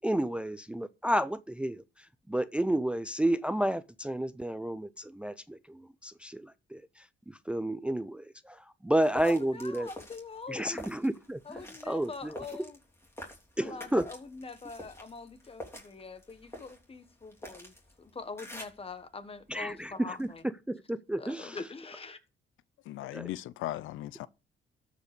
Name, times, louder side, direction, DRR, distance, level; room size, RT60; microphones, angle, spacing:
voice 1, 0.0-9.9 10.5-12.4 13.6-14.1 19.5-21.6 23.1-23.3, right 1 dB, 5° right, 0.4 m, -31 dB
sound 1, 8.9-18.9 19.4-20.4, left 1 dB, 10° left, 3.3 m, -48 dB
voice 2, 9.2-10.8 11.4-12.8 13.6-20.4 21.2-22.2, left 4 dB, 30° left, 1.4 m, -43 dB
voice 3, 22.8-24.3, left 15 dB, 85° left, 0.5 m, -37 dB
13.0 x 5.2 x 5.2 m
cardioid pair, 90°, 20 cm